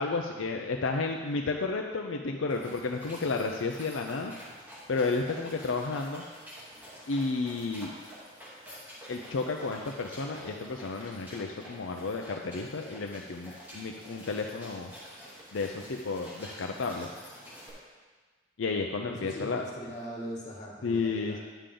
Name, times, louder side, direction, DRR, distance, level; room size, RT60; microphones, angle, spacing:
voice 1, 0.0-4.3 4.9-6.2 7.1-7.9 9.1-14.9 15.5-17.1 18.6-19.7 20.8-21.4, left 3 dB, 80° left, 2 dB, 0.6 m, -32 dB
sound 1, 2.5-17.7, equal, 10° right, 2.9 m, -48 dB
voice 2, 19.0-21.4, equal, 40° left, -3 dB, 1.9 m, -40 dB
10.0 x 6.8 x 3.8 m, 1.4 s
head